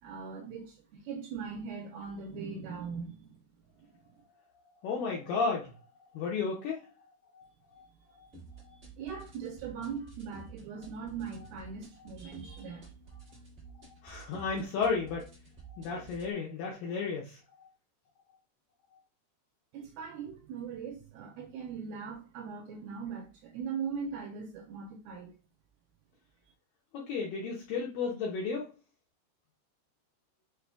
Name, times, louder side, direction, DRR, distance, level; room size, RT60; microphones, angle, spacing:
voice 1, 0.0-3.4 3.8-3.9 8.7-12.9 19.7-25.4, right 6 dB, 80° right, 2.3 m, -40 dB
voice 2, 4.8-5.7 6.1-6.9 7.3-7.5 7.7-7.9 8.2-8.3 8.7-8.8 14.0-15.3 15.7-17.7 26.9-28.7, left 5 dB, 80° left, 2.0 m, -33 dB
sound 1, 8.3-16.3, right 4 dB, 55° right, 0.7 m, -51 dB
6.5 x 2.8 x 2.3 m
omnidirectional pair, 4.9 m